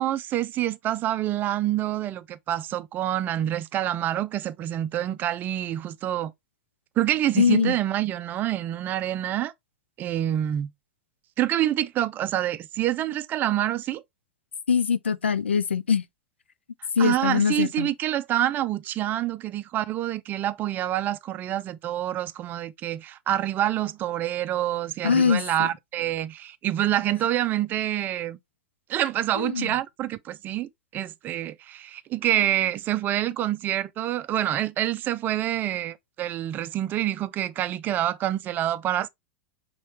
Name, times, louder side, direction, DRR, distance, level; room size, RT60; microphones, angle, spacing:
voice 1, 0.0-6.3 7.0-9.5 10.0-10.7 11.4-14.0 17.0-28.4 28.9-39.1, right 12 dB, 30° right, 0.4 m, -27 dB
voice 2, 7.4-7.8 14.7-16.0 17.0-17.9 25.0-25.7 29.4-29.7, left 6 dB, 80° left, 0.4 m, -22 dB
5.5 x 3.0 x 3.0 m
figure-of-eight pair, 90°, 6 cm